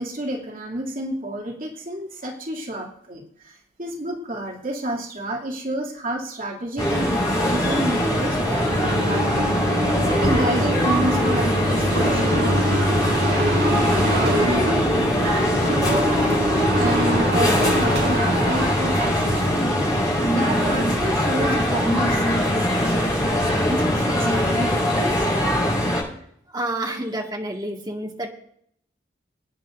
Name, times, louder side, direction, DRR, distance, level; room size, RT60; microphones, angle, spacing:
voice 1, 0.0-9.6 10.2-13.4 13.9-16.2 16.7-19.9 20.3-25.3, right 1 dB, 45° right, -3 dB, 2.7 m, -30 dB
sound 1, 6.8-26.0, equal, 20° left, 7.0 m, -22 dB
sound 2, 8.7-19.6, equal, 65° right, 6.5 m, -25 dB
voice 2, 26.5-28.3, right 1 dB, 20° right, -1 dB, 1.8 m, -29 dB
26.0 x 9.9 x 2.6 m, 0.70 s
head